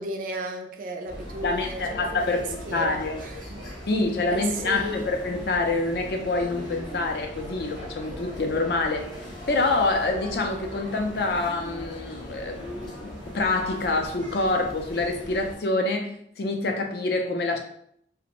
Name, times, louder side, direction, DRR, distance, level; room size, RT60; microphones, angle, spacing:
voice 1, 0.0-3.6 4.3-5.1, right 2 dB, 45° right, 3 dB, 0.3 m, -34 dB
sound 1, 1.1-15.6, equal, 25° left, 0.8 m, -39 dB
voice 2, 1.4-2.4 2.7-3.2 3.9-9.1 9.5-17.6, left 3 dB, 60° left, 4 dB, 0.4 m, -26 dB
2.4 x 2.0 x 2.9 m, 0.68 s
head